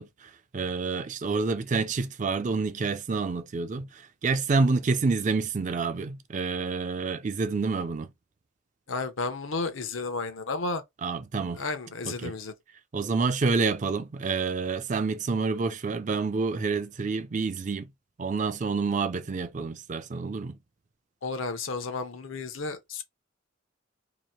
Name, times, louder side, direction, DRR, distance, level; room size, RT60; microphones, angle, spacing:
voice 1, 0.0-8.1 11.0-11.6 12.0-12.3 12.9-17.9 18.2-20.6, right 4 dB, 35° right, 0.4 m, -28 dB
voice 2, 8.9-10.8 11.5-12.5 21.2-23.0, left 3 dB, 75° left, 0.8 m, -32 dB
2.9 x 2.5 x 4.3 m
head